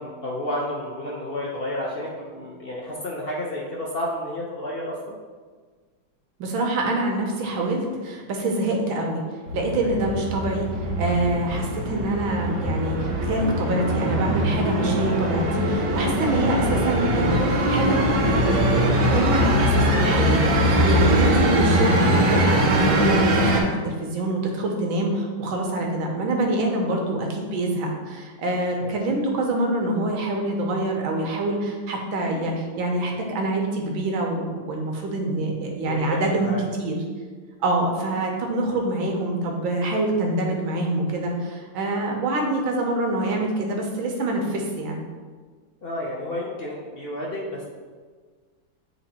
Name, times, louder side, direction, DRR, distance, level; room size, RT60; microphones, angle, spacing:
voice 1, 0.0-5.1 9.8-10.0 28.8-29.0 35.9-36.6 45.8-47.6, left 1 dB, 85° left, -3 dB, 0.5 m, -31 dB
voice 2, 6.4-9.2 9.5-37.0 37.6-45.0, right 2 dB, 85° right, 1 dB, 1.7 m, -26 dB
sound 1, 9.5-23.6, equal, 65° right, 1.6 m, -21 dB
8.3 x 3.0 x 4.2 m, 1.5 s
omnidirectional pair, 2.1 m